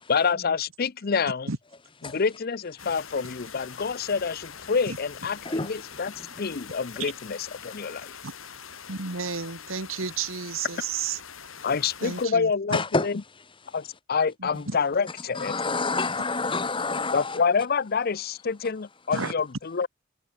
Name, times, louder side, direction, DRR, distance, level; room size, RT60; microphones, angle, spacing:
voice 1, 0.1-1.5 2.0-6.1 6.4-8.2 11.6-13.1 13.7-15.5 17.1-19.9, left 5 dB, 50° left, 0.6 m, -27 dB
sound 1, 2.8-12.3, left 7 dB, 80° left, 4.5 m, -44 dB
voice 2, 5.4-6.6 12.7-13.1 13.3-13.8 14.5-14.6 15.2-17.4 19.1-19.3, left 3 dB, 25° left, 1.5 m, -30 dB
voice 3, 8.9-11.2 12.0-12.5 14.4-14.8 19.1-19.3, right 5 dB, 80° right, 1.9 m, -32 dB
head